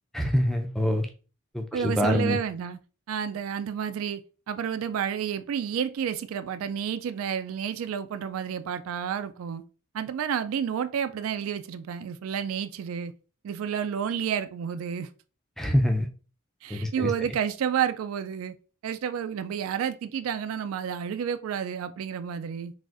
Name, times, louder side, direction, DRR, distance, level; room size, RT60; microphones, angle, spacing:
voice 1, 0.1-1.1 1.5-2.4 15.6-16.1 16.7-17.1, equal, ahead, 0.4 m, -25 dB
voice 2, 1.7-2.8 3.1-4.2 4.5-9.6 9.9-13.1 13.4-15.1 16.6-18.5 18.8-22.7, right 8 dB, 80° right, 0.3 m, -30 dB
6.0 x 2.5 x 2.4 m
head